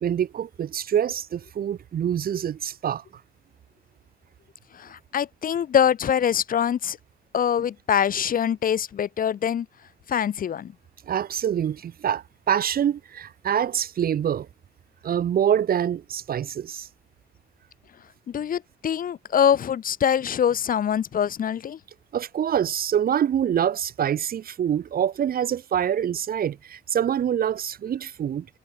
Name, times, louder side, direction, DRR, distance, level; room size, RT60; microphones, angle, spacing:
voice 1, 0.0-3.0 11.1-14.5 15.0-16.9 22.1-28.5, right 9 dB, 50° right, 0.6 m, -25 dB
voice 2, 4.7-7.0 7.3-9.7 10.1-10.7 18.3-21.8, left 9 dB, 45° left, 0.6 m, -24 dB
cardioid pair, 90°, 20 cm